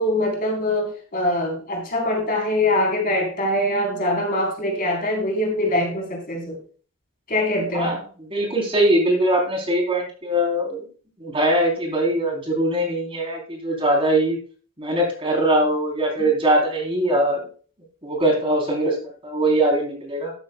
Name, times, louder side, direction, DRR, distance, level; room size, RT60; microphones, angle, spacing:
voice 1, 0.0-6.6 7.3-8.0, left 1 dB, 45° left, 0 dB, 3.8 m, -23 dB
voice 2, 8.3-10.8 11.2-14.4 14.8-17.4 18.0-19.0 19.2-20.3, right 1 dB, 25° right, 0 dB, 3.4 m, -21 dB
13.0 x 13.0 x 2.2 m, 0.40 s
head